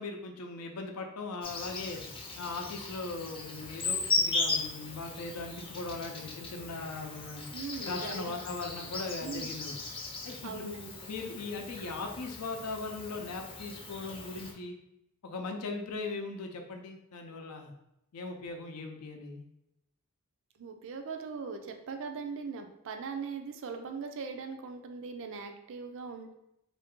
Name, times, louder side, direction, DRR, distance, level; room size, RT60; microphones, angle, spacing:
voice 1, 0.0-2.0 2.4-7.4 7.8-9.8 10.3-10.8 11.1-14.7 15.2-17.7 18.1-19.4, left 3 dB, 90° left, 3 dB, 0.6 m, -39 dB
Insect, 1.4-14.5, left 3 dB, 25° left, 0.5 m, -37 dB
voice 2, 7.5-8.3 9.2-9.5 10.4-11.0 20.6-26.3, right 5 dB, 60° right, 5 dB, 0.4 m, -40 dB
3.2 x 2.6 x 3.6 m, 0.84 s
head